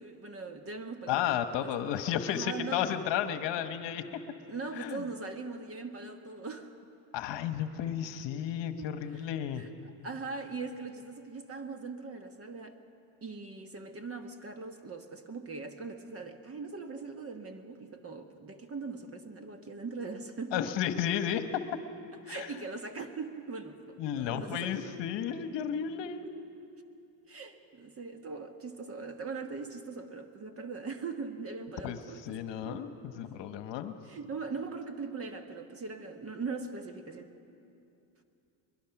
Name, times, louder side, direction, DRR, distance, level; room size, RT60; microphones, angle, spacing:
voice 1, 0.0-1.3 1.5-2.8 4.5-6.7 8.8-9.2 9.6-9.7 10.0-12.8 13.2-20.6 22.2-24.9 26.2-26.3 27.3-32.4 32.6-32.9 33.1-33.3 34.0-37.3, right 4 dB, 25° right, 7 dB, 1.3 m, -41 dB
voice 2, 1.1-4.0 4.8-5.0 7.1-9.6 20.5-21.4 22.3-22.5 24.0-26.2 31.8-33.9, left 9 dB, 60° left, 9 dB, 1.2 m, -33 dB
22.0 x 21.5 x 5.9 m, 2.7 s
cardioid pair, 115°, 50 cm